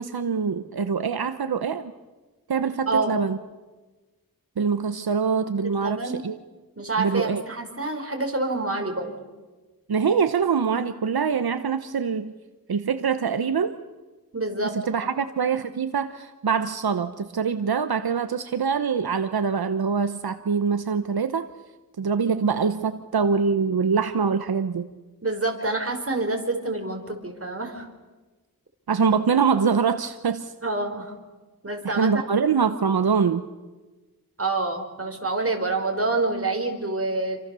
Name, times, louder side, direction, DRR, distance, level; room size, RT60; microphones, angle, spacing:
voice 1, 0.0-1.9 2.5-3.4 4.6-6.3 7.0-7.4 9.9-12.3 12.7-13.8 14.7-21.5 22.0-24.9 28.9-30.5 31.8-33.4, right 6 dB, 85° right, 10 dB, 1.0 m, -24 dB
voice 2, 2.9-3.2 5.7-6.2 6.8-9.1 14.3-14.7 15.0-15.1 25.2-27.9 30.6-31.1 31.6-32.1 34.4-37.4, right 3 dB, 40° right, 3 dB, 4.8 m, -27 dB
28.5 x 25.5 x 6.9 m, 1.3 s
wide cardioid pair, 65°, 36 cm